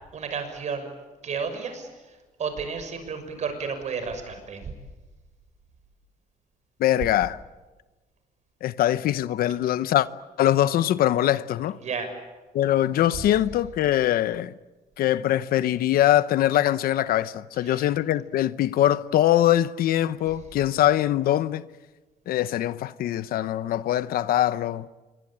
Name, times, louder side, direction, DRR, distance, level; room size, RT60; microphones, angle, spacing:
voice 1, 0.1-0.9 1.2-1.9 2.4-4.7 11.8-12.1 17.6-17.9, right 5 dB, 50° right, 6.4 m, -32 dB
voice 2, 6.8-7.4 8.6-10.1 10.4-11.8 12.5-14.5 15.0-21.7 22.3-24.9, left 12 dB, 75° left, 0.9 m, -22 dB
27.0 x 23.0 x 8.8 m
cardioid pair, 120°, 15 cm